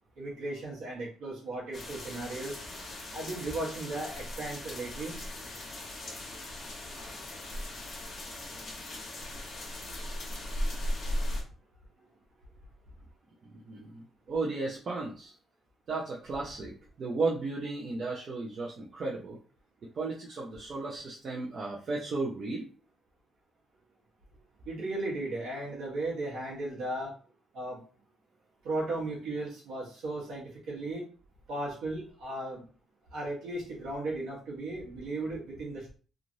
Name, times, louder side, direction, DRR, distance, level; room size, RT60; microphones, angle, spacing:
voice 1, 0.2-2.6 3.1-5.2 24.7-27.1 27.5-27.8 28.6-31.1 31.5-32.6 33.1-35.9, right 2 dB, 80° right, -5 dB, 1.1 m, -36 dB
sound 1, 1.7-11.4, left 1 dB, 50° left, 1.2 m, -38 dB
voice 2, 13.4-15.3 15.9-19.4 19.8-22.7, right 3 dB, 50° right, -3 dB, 0.6 m, -34 dB
3.1 x 2.4 x 2.6 m, 0.37 s
cardioid pair, 90°, 0 cm